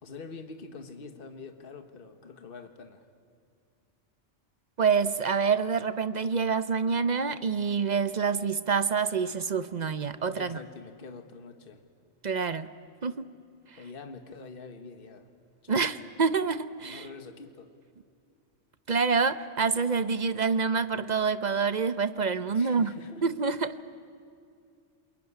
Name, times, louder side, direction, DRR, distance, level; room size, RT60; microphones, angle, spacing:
voice 1, 0.0-3.1 10.4-11.8 13.8-15.3 15.6-15.9 16.8-17.7 22.5-23.2, left 4 dB, 50° left, 7 dB, 1.5 m, -45 dB
voice 2, 4.8-10.6 12.2-12.7 13.0-13.3 15.7-17.1 18.9-22.9 23.2-23.8, right 5 dB, 40° right, 13 dB, 0.8 m, -27 dB
28.0 x 21.5 x 9.8 m, 2.4 s
omnidirectional pair, 1.2 m